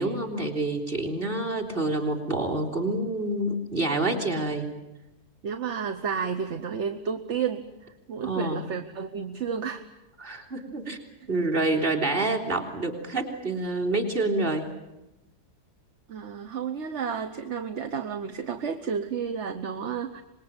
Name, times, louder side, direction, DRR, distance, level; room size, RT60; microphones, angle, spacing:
voice 1, 0.0-4.7 8.2-8.6 10.2-11.0 11.3-14.7, right 2 dB, 35° right, 6 dB, 3.6 m, -27 dB
voice 2, 5.4-7.7 8.1-9.9 16.1-20.2, right 6 dB, 50° right, 8 dB, 1.3 m, -31 dB
25.5 x 21.0 x 8.8 m, 0.96 s
omnidirectional pair, 1.7 m